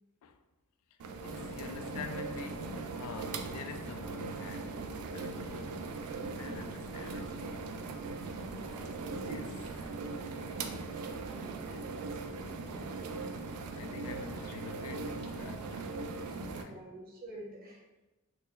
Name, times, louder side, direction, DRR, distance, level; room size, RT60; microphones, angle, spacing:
sound 1, 1.0-16.6, right 3 dB, 85° right, 0.4 m, -40 dB
voice 1, 1.2-7.7 9.1-9.9 13.2-16.8, left 5 dB, 80° left, 0.3 m, -47 dB
voice 2, 8.4-9.7 11.1-12.9 16.6-17.8, right 1 dB, 40° right, 0.9 m, -52 dB
4.2 x 2.1 x 3.1 m
head